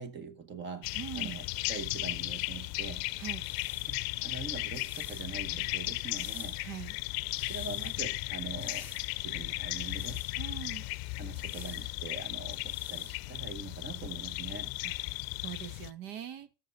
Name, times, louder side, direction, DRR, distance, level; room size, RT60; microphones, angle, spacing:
voice 1, 0.0-3.1 3.9-6.6 7.3-8.9 9.2-10.3 11.2-14.7, right 5 dB, 30° right, 1.0 m, -43 dB
sound 1, 0.8-15.9, left 22 dB, 85° left, 0.5 m, -36 dB
voice 2, 0.9-1.4 3.2-3.4 6.6-6.9 10.4-10.8 14.8-16.5, right 10 dB, 85° right, 1.2 m, -42 dB
sound 2, 3.3-14.0, left 1 dB, 5° right, 0.9 m, -55 dB
7.7 x 6.8 x 5.3 m
cardioid pair, 175°, 35 cm